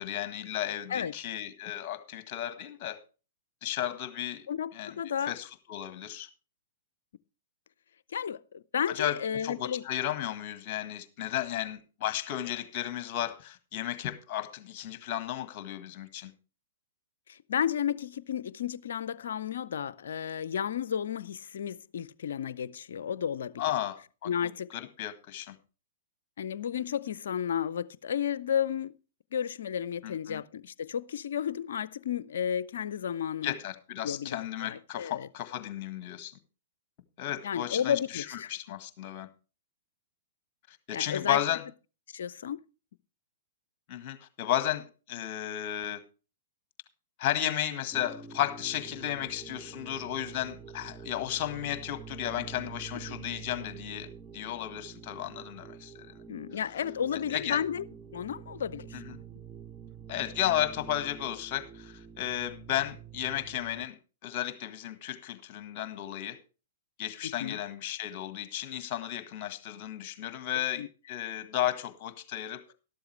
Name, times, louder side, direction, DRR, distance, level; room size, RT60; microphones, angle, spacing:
voice 1, 0.0-3.0 3.6-4.5 4.7-5.0 5.3-6.3 8.9-16.3 23.6-25.5 30.0-30.4 33.4-36.4 37.2-39.3 40.7-41.6 43.9-46.0 47.2-56.1 57.3-57.6 58.9-59.2 60.1-66.4 67.0-72.6, left 11 dB, 40° left, 1.6 m, -34 dB
voice 2, 4.5-5.4 8.1-9.8 17.3-23.6 24.2-24.7 26.4-28.9 29.3-33.6 34.0-35.3 37.4-38.5 40.9-41.4 42.1-42.6 56.3-57.8 58.1-59.2 67.2-67.6 70.8-70.9, left 8 dB, 65° left, 0.5 m, -32 dB
sound 1, 47.9-63.9, right 7 dB, 15° right, 0.7 m, -47 dB
12.5 x 12.5 x 3.2 m
figure-of-eight pair, 110°, 0 cm